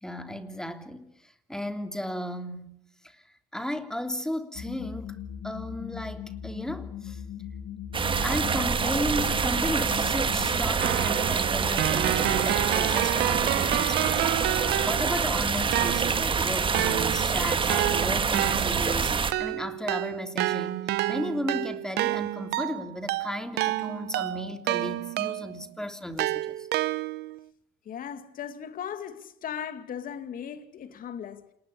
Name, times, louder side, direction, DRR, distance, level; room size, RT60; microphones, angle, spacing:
voice 1, 0.0-3.2 3.5-5.2 5.4-7.2 8.2-14.5 14.8-19.1 19.4-26.7, left 1 dB, 5° left, 3.1 m, -35 dB
sound 1, 4.5-10.6, left 9 dB, 75° left, 3.1 m, -39 dB
sound 2, 7.9-19.3, right 5 dB, 30° right, 1.8 m, -26 dB
Keyboard (musical), 10.8-15.3 15.7-25.6 26.2-27.4, right 16 dB, 80° right, 1.0 m, -30 dB
voice 2, 27.9-31.4, left 8 dB, 55° left, 2.4 m, -37 dB
28.0 x 20.0 x 8.5 m
cardioid pair, 110°, 17 cm